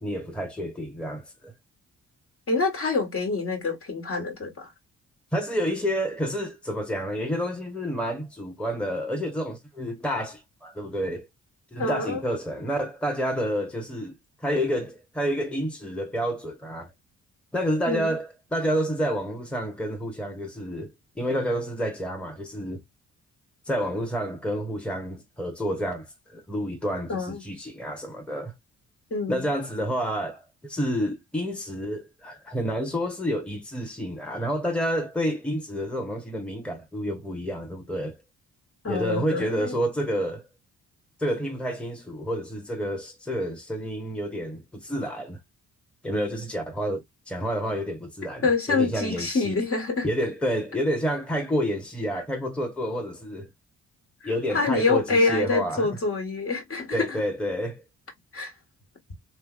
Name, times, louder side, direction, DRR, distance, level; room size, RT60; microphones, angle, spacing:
voice 1, 0.0-1.5 5.3-11.3 11.7-14.1 14.4-16.9 17.5-22.8 23.7-28.5 29.3-38.2 38.8-40.4 41.2-45.4 46.0-49.5 50.0-53.5 54.2-55.9 56.9-57.8, equal, 5° left, 1.1 m, -29 dB
voice 2, 2.5-4.7 11.8-12.2 17.9-18.2 27.1-27.4 29.1-29.5 38.8-39.8 48.4-50.0 54.2-57.2 58.3-58.5, left 3 dB, 45° left, 1.5 m, -26 dB
3.3 x 3.1 x 2.4 m
cardioid pair, 75°, 32 cm